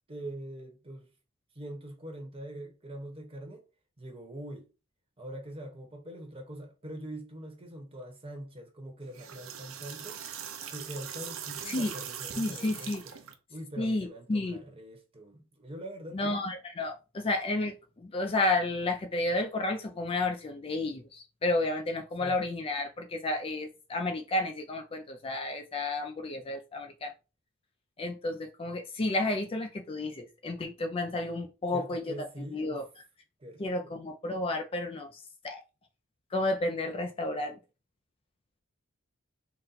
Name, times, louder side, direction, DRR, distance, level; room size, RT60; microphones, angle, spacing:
voice 1, 0.1-1.1 1.5-3.6 4.0-4.7 5.2-10.4 10.7-13.0 13.5-16.4 22.2-22.4 31.7-32.8 33.4-33.9, right 1 dB, 25° right, 1.0 m, -43 dB
sound 1, 9.0-13.3, right 8 dB, 70° right, 0.6 m, -41 dB
voice 2, 12.4-13.0 13.8-14.6 16.1-27.1 28.0-32.8 33.6-35.6 36.3-37.6, left 2 dB, 25° left, 0.4 m, -31 dB
4.1 x 2.1 x 3.9 m
head